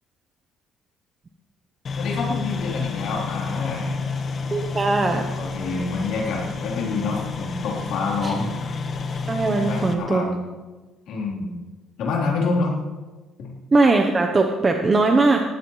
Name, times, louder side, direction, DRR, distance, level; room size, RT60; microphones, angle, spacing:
sound 1, 1.8-9.9, left 4 dB, 30° left, 1.2 m, -30 dB
voice 1, 2.0-4.0 5.4-8.7 9.6-10.4 11.1-11.5 12.0-12.7 13.4-13.5, left 3 dB, 60° left, -3 dB, 3.4 m, -27 dB
voice 2, 4.5-5.2 8.2-8.3 9.3-10.2 13.7-15.4, right 3 dB, 20° right, 4 dB, 0.8 m, -19 dB
19.0 x 15.0 x 3.2 m, 1.3 s
cardioid pair, 180°, 0 cm